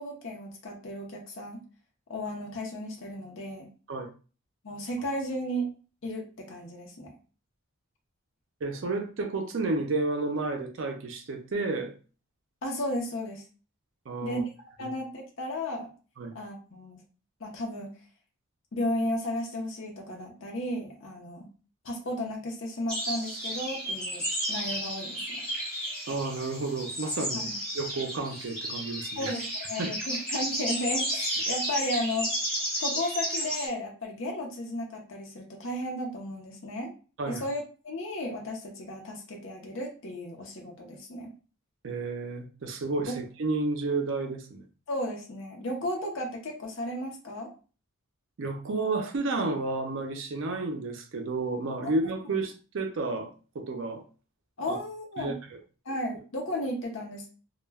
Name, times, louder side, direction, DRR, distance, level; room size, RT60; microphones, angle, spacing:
voice 1, 0.0-1.6 2.1-3.7 4.6-5.7 6.0-7.1 12.6-13.4 14.2-14.5 14.8-15.9 16.3-17.0 17.4-17.9 18.7-21.5 21.8-25.4 27.3-27.5 29.2-32.3 32.8-36.9 37.3-41.3 43.1-43.2 44.9-47.5 51.8-51.9 54.6-55.3 55.9-57.3, left 1 dB, 60° left, 1 dB, 0.6 m, -34 dB
voice 2, 8.6-11.9 14.1-14.4 14.8-14.9 16.2-16.3 26.1-27.5 27.7-29.3 29.8-29.9 37.2-37.4 41.8-44.6 48.4-54.0 54.7-54.8 55.2-55.6, right 3 dB, 55° right, 4 dB, 0.4 m, -31 dB
sound 1, 22.9-33.7, equal, 5° left, 0.8 m, -33 dB
2.1 x 2.1 x 3.3 m, 0.36 s
head